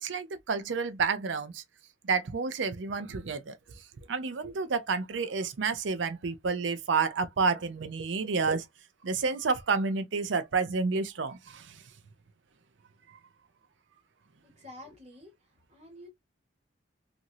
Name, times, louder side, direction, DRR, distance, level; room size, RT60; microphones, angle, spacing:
voice 1, 0.0-1.6 2.0-3.6 4.1-8.6 9.0-11.7, right 4 dB, 85° right, 0.5 m, -30 dB
voice 2, 14.4-15.3 15.7-16.1, left 1 dB, 40° right, 1.7 m, -49 dB
3.0 x 2.5 x 2.6 m
head